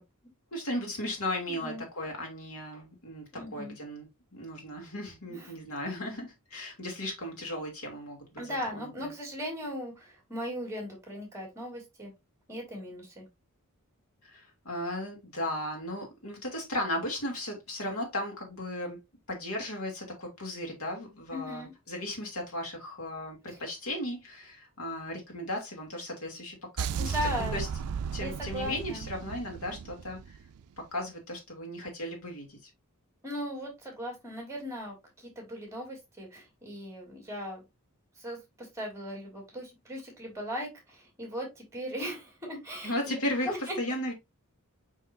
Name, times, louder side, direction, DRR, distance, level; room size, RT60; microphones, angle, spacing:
voice 1, 0.5-9.1 14.2-19.0 19.3-27.7 28.1-30.4 30.9-32.6 42.8-44.1, left 1 dB, 70° left, 3.0 m, -36 dB
voice 2, 1.5-1.8 3.3-3.8 5.3-5.5 8.4-12.1 12.5-13.3 21.3-21.7 27.0-27.6 28.2-29.1 33.2-37.6 38.2-43.2 43.4-43.8, equal, 15° right, 3.4 m, -38 dB
sound 1, 26.8-30.9, right 7 dB, 80° right, 0.4 m, -35 dB
6.2 x 5.7 x 2.7 m
head